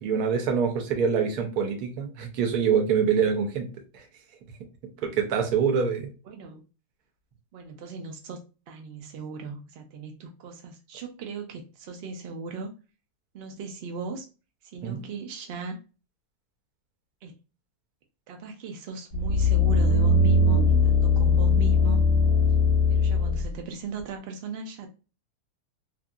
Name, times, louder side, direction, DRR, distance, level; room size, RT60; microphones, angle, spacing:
voice 1, 0.0-3.7 3.9-4.0 5.0-6.1 14.8-15.0, right 6 dB, 85° right, 1.2 m, -25 dB
voice 2, 6.3-6.6 7.5-8.4 8.7-12.7 13.3-14.3 14.7-15.8 17.2-17.3 18.3-22.0 22.9-24.9, right 3 dB, 60° right, 0.6 m, -37 dB
sound 1, 19.1-23.5 24.0-24.1, left 3 dB, 75° left, 1.0 m, -20 dB
2.9 x 2.6 x 2.3 m
omnidirectional pair, 1.6 m